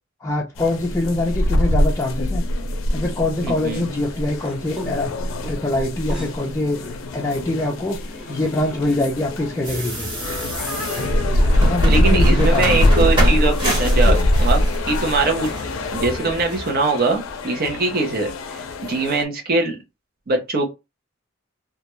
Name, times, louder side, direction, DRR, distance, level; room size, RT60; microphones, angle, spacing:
voice 1, 0.2-2.4 2.9-5.1 5.5-6.8 7.1-8.0 8.3-10.1 11.6-13.0, left 2 dB, 15° left, 0.4 m, -24 dB
sound 1, 0.6-19.2, left 1 dB, 85° left, 0.4 m, -22 dB
voice 2, 3.4-3.8 11.9-15.5 15.9-19.8 20.3-20.7, right 3 dB, 50° right, 0.6 m, -22 dB
sound 2, 3.7-17.4, left 1 dB, 5° right, 0.8 m, -39 dB
sound 3, 9.6-16.8, right 1 dB, 25° right, 1.1 m, -29 dB
2.3 x 2.1 x 2.9 m
head